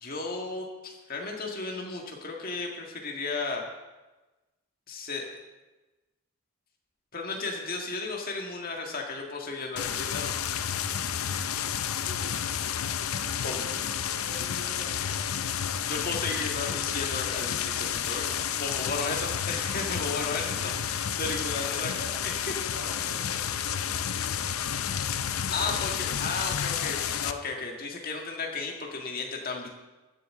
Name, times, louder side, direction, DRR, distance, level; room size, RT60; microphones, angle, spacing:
voice 1, 0.0-3.6 4.9-5.3 7.1-10.3 13.4-13.6 15.8-21.9 22.2-22.3 25.5-29.7, left 3 dB, 40° left, 1 dB, 1.9 m, -34 dB
sound 1, 9.8-27.3, left 8 dB, 75° left, 0.6 m, -31 dB
voice 2, 12.0-12.5 13.0-15.4 20.5-20.9 21.5-22.2 22.6-24.4 25.5-26.3, equal, 50° right, -4 dB, 4.9 m, -47 dB
15.5 x 10.0 x 3.8 m, 1.1 s
head